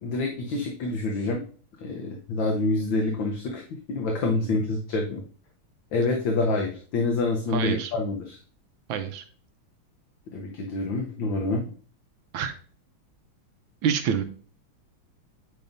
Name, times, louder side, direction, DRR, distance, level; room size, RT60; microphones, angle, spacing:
voice 1, 0.0-1.4 1.8-5.2 5.9-8.4 10.3-11.7, left 3 dB, 65° left, 1 dB, 1.6 m, -27 dB
voice 2, 7.5-7.9 8.9-9.2 12.3-12.5 13.8-14.2, right 7 dB, 75° right, 8 dB, 1.4 m, -27 dB
9.3 x 5.1 x 2.6 m, 0.43 s
omnidirectional pair, 2.3 m